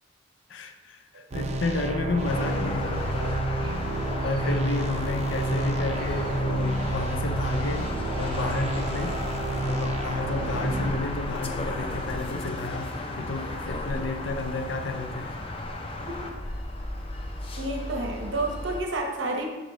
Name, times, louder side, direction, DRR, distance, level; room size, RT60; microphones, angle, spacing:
voice 1, 0.5-3.5 4.2-7.9 8.2-9.2 9.6-15.4, left 3 dB, 75° left, 0.5 m, -32 dB
sound 1, 1.3-11.0, right 2 dB, 35° right, 0.5 m, -29 dB
sound 2, 2.2-18.8, left 1 dB, 30° left, 0.6 m, -34 dB
voice 2, 17.6-19.5, right 2 dB, 80° right, 0.9 m, -30 dB
6.1 x 5.1 x 3.8 m
head